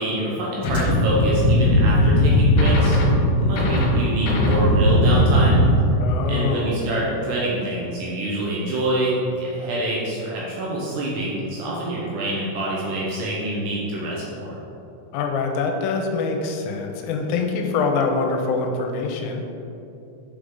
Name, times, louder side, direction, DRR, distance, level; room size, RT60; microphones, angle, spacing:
voice 1, 0.0-3.0 3.4-5.6 6.3-14.6, right 1 dB, 75° right, -5 dB, 2.5 m, -26 dB
sound 1, 0.6-5.8, left 1 dB, 65° left, 2.8 m, -18 dB
voice 2, 6.0-6.8 15.1-19.4, left 4 dB, 85° left, 3 dB, 3.2 m, -24 dB
8.4 x 5.0 x 3.8 m, 2.8 s
omnidirectional pair, 5.7 m